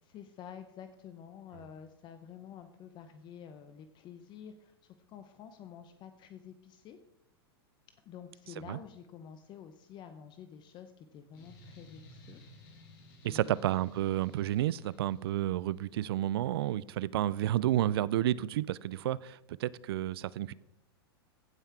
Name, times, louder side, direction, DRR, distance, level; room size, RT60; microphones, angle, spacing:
voice 1, 0.0-7.0 8.1-12.9 13.3-13.6, left 8 dB, 35° left, 0.8 m, -50 dB
sound 1, 11.3-15.8, left 1 dB, 55° left, 3.6 m, -56 dB
voice 2, 13.2-20.5, right 13 dB, 70° right, 0.4 m, -31 dB
15.5 x 5.6 x 4.7 m
hypercardioid pair, 110°, 13 cm